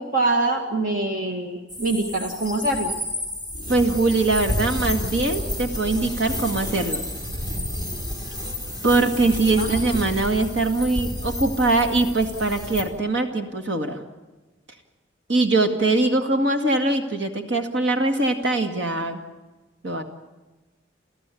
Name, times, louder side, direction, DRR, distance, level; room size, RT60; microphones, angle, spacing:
voice 1, 0.0-2.9 9.6-9.8, right 2 dB, 45° right, 3 dB, 2.0 m, -24 dB
sound 1, 1.7-12.8, left 1 dB, 20° right, 4.6 m, -30 dB
voice 2, 3.7-7.1 8.8-14.0 15.3-19.2 19.8-20.0, right 2 dB, 65° right, 5 dB, 2.2 m, -22 dB
29.5 x 15.0 x 8.5 m, 1.2 s
head